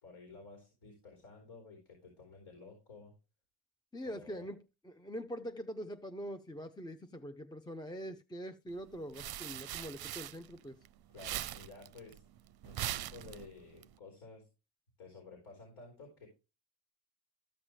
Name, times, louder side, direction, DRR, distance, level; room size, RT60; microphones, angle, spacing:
voice 1, 0.0-3.1 4.0-4.5 11.1-12.2 12.6-14.5 15.0-16.3, left 4 dB, 80° left, 4.1 m, -53 dB
voice 2, 3.9-10.8, equal, 10° left, 0.6 m, -44 dB
sound 1, 8.8-10.9 11.1-13.8, right 12 dB, 50° right, 0.6 m, -41 dB
13.5 x 6.0 x 3.2 m
supercardioid pair, 55°, 48 cm